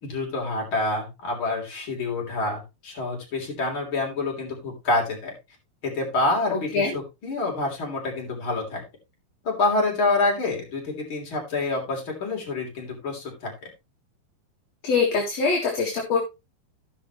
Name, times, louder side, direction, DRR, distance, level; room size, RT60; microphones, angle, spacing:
voice 1, 0.0-5.3 5.8-8.8 9.4-13.5, left 2 dB, 35° left, -1 dB, 3.9 m, -27 dB
voice 2, 6.5-7.0 14.8-16.2, left 4 dB, 55° left, 0 dB, 2.6 m, -23 dB
16.5 x 5.6 x 3.1 m, 0.24 s
omnidirectional pair, 4.3 m